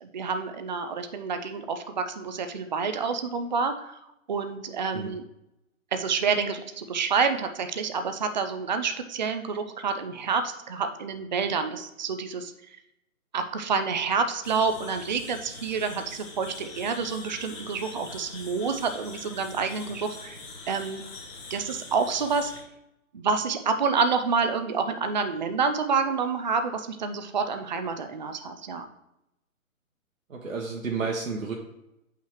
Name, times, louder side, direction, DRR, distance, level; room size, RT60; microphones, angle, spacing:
voice 1, 0.0-3.9 4.3-5.2 5.9-12.5 13.3-20.4 20.7-21.0 21.5-22.5 23.1-28.9, right 5 dB, 35° right, 8 dB, 0.4 m, -28 dB
sound 1, 14.4-22.6, left 3 dB, 20° left, 1.8 m, -43 dB
voice 2, 30.3-31.5, right 4 dB, 70° right, -1 dB, 1.3 m, -31 dB
8.5 x 5.7 x 3.1 m, 0.86 s
figure-of-eight pair, 140°, 41 cm